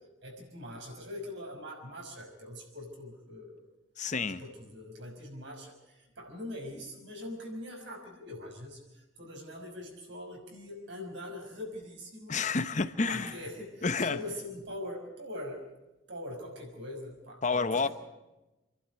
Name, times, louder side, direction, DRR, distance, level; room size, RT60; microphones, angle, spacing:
voice 1, 0.2-3.7 4.2-12.4 13.1-15.7 16.1-17.9, left 1 dB, 65° right, 5.8 m, -43 dB
voice 2, 4.0-4.4 12.3-13.4 13.8-14.2 17.4-17.9, left 4 dB, 40° left, 0.8 m, -29 dB
27.5 x 12.0 x 9.5 m
head